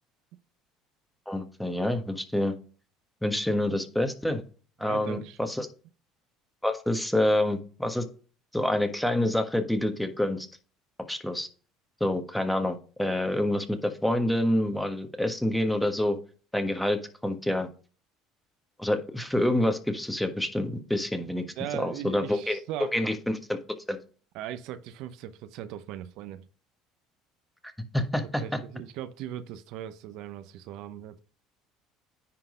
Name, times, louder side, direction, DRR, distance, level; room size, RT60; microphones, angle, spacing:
voice 1, 1.3-2.6 3.2-4.4 4.8-5.7 6.6-8.0 8.5-10.5 11.1-11.5 12.0-16.2 16.5-17.7 18.8-21.4 21.7-22.6 22.9-23.6 23.9-24.0 27.9-28.4, left 1 dB, 5° left, 1.4 m, -27 dB
voice 2, 4.8-5.4 21.6-22.9 24.3-26.5 28.4-31.2, right 11 dB, 70° right, 0.7 m, -38 dB
10.0 x 3.9 x 5.0 m
supercardioid pair, 80°, 0 cm